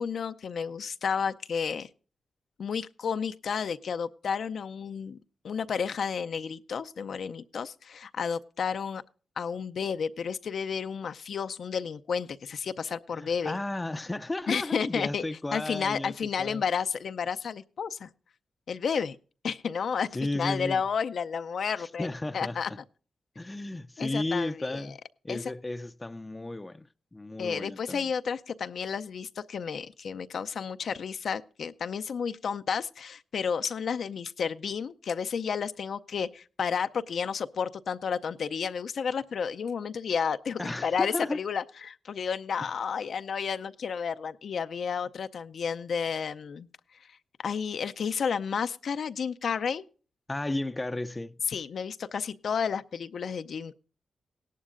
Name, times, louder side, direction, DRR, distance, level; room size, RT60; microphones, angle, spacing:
voice 1, 0.0-1.9 2.6-5.2 5.4-9.0 9.4-13.6 14.5-15.2 15.5-18.1 18.7-19.2 19.4-22.1 22.3-22.7 24.0-24.9 25.3-25.5 27.4-47.2 47.4-49.8 51.5-53.7, left 6 dB, 70° left, 0.5 m, -31 dB
voice 2, 13.1-16.6 20.1-20.8 21.8-22.8 23.4-25.0 25.2-28.1 40.6-41.4 50.3-51.4, left 2 dB, 20° left, 0.5 m, -34 dB
17.5 x 11.0 x 2.5 m
cardioid pair, 70°, 0 cm